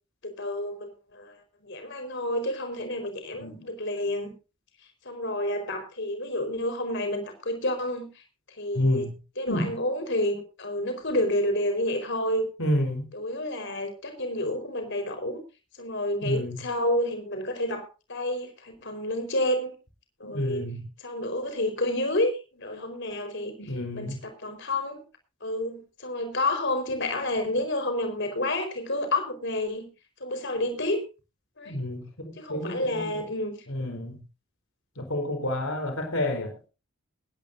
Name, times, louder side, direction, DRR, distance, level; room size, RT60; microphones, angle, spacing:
voice 1, 0.2-1.3 1.7-4.3 5.0-8.1 8.6-9.1 9.4-12.5 13.1-15.4 15.8-19.7 20.2-20.7 21.0-23.5 23.9-25.0 25.4-29.9 30.2-31.0 31.6-31.8 32.4-33.6, left 1 dB, 55° left, 6 dB, 4.4 m, -29 dB
voice 2, 3.3-3.7 8.7-9.2 9.5-9.9 12.6-13.0 16.2-16.6 20.2-20.9 23.6-24.2 31.7-33.3 33.7-34.2 35.0-36.6, left 1 dB, 70° left, 4 dB, 4.0 m, -30 dB
21.0 x 13.5 x 2.7 m, 0.31 s
head